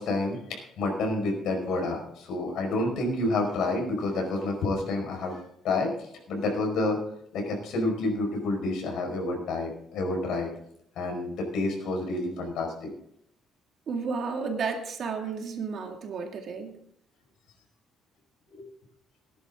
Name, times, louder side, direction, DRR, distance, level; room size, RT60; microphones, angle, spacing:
voice 1, 0.0-5.4 5.6-7.0 7.3-10.5 11.0-12.9 18.6-18.7, left 2 dB, 70° left, 2 dB, 5.0 m, -29 dB
voice 2, 13.9-16.7, right 5 dB, 45° right, 3 dB, 2.1 m, -32 dB
18.0 x 10.5 x 3.7 m, 0.69 s
cardioid pair, 160°, 0 cm